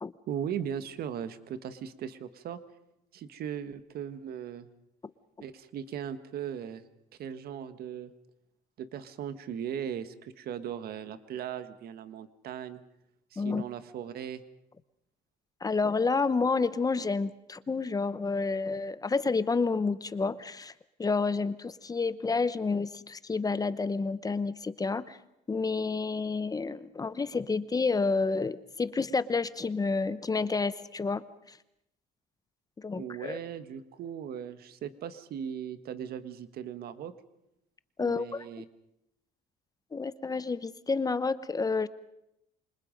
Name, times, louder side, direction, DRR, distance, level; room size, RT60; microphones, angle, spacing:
voice 1, 0.3-2.6 3.1-4.7 5.4-6.8 7.2-8.1 8.8-12.8 13.3-14.4 33.0-37.1 38.0-38.6, right 9 dB, 65° right, 11 dB, 1.6 m, -38 dB
voice 2, 15.6-20.7 21.0-25.2 25.5-31.6 32.8-33.4 38.0-38.4 39.9-41.9, left 4 dB, 20° left, 15 dB, 0.9 m, -29 dB
28.0 x 25.5 x 5.3 m, 0.82 s
cardioid pair, 110°, 17 cm